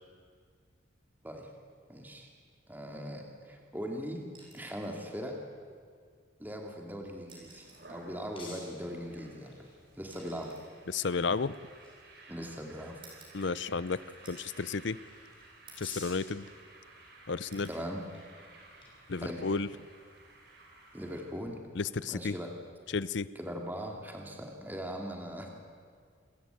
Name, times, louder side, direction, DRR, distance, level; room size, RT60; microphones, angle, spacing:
voice 1, 1.9-2.3 2.7-4.2 4.5-5.4 6.4-9.5 10.0-10.5 12.3-13.0 17.7-18.0 19.2-19.4 20.9-21.6 22.1-22.5 23.3-25.5, equal, 10° right, 1 dB, 2.5 m, -40 dB
sound 1, 4.3-5.0 6.4-6.5 7.2-8.0 9.1-12.2 13.0-13.9 14.2-14.7 15.1-15.2 15.7-16.1 16.5-17.1 17.5-17.8 19.3-19.5, right 3 dB, 25° right, 6.0 m, -57 dB
sound 2, 7.0-21.5, left 3 dB, 25° left, 7.0 m, -55 dB
sound 3, 7.6-21.3, right 2 dB, 50° right, 5.0 m, -55 dB
voice 2, 10.9-11.5 13.3-14.0 14.3-15.0 15.8-16.5 17.3-17.7 19.1-19.7 21.8-22.3 22.9-23.3, left 4 dB, 60° left, 17 dB, 0.6 m, -32 dB
28.0 x 15.0 x 9.2 m, 2.1 s
head